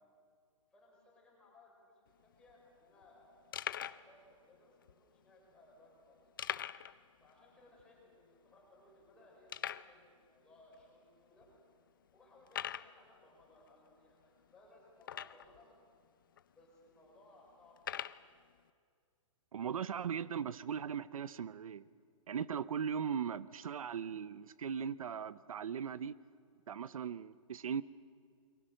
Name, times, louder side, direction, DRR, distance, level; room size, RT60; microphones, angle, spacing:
voice 1, 0.7-6.5 7.2-11.5 12.1-15.7 16.5-18.4, left 1 dB, 5° left, -4 dB, 5.2 m, -63 dB
sound 1, 2.1-2.2 2.3-2.5 3.0-3.1 3.5-4.1 4.8-4.9 6.4-7.0 7.3-7.4 7.8-7.9 8.5-8.6 9.5-9.9 10.7-10.8 11.4-11.5 12.5-12.9 15.0-15.6 16.4-16.5 17.8-18.2, left 10 dB, 40° left, 0.6 m, -41 dB
voice 2, 19.5-21.9 22.3-26.1 26.7-27.8, right 7 dB, 85° right, 16 dB, 0.8 m, -38 dB
29.0 x 23.5 x 6.5 m, 2.1 s
hypercardioid pair, 180°, 17 cm